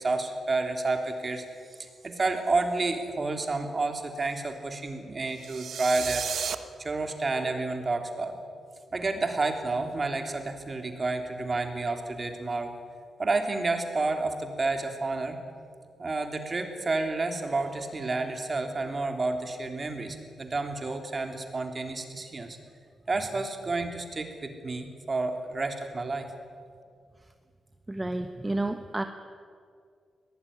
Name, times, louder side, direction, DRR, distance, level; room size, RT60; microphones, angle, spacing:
voice 1, 0.0-1.4 1.7-6.3 6.8-8.4 8.9-12.7 13.2-15.4 16.0-22.6 23.1-26.3, right 3 dB, 35° right, 5 dB, 3.3 m, -30 dB
sound 1, 5.4-6.6, right 8 dB, 75° right, 1.2 m, -33 dB
voice 2, 27.9-29.0, right 2 dB, 15° right, 7 dB, 1.2 m, -30 dB
23.0 x 18.5 x 9.8 m, 2.2 s
cardioid pair, 105°, 0 cm